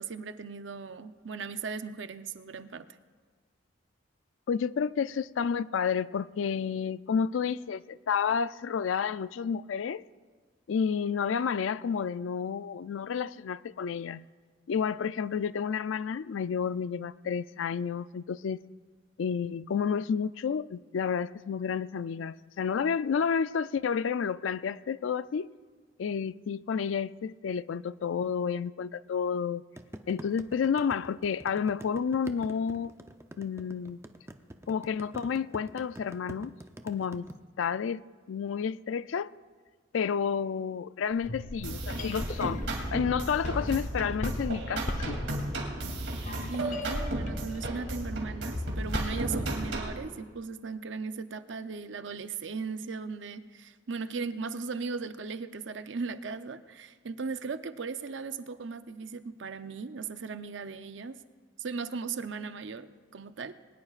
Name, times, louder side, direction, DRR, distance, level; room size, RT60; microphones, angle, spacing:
voice 1, 0.0-2.9 46.5-61.2 61.6-63.5, right 4 dB, 70° right, 0.6 m, -37 dB
voice 2, 4.5-10.0 10.7-14.2 14.7-18.6 19.2-25.5 26.0-29.6 30.1-32.9 33.4-34.0 34.7-36.5 36.8-37.3 37.6-39.4 39.9-42.6 42.9-45.2, left 6 dB, 85° left, 0.4 m, -30 dB
sound 1, 29.8-37.3, right 1 dB, 15° right, 0.6 m, -44 dB
sound 2, 41.1-49.9, left 1 dB, 40° left, 0.8 m, -39 dB
sound 3, 41.6-50.0, right 1 dB, 90° right, 2.8 m, -34 dB
22.0 x 19.5 x 2.5 m
head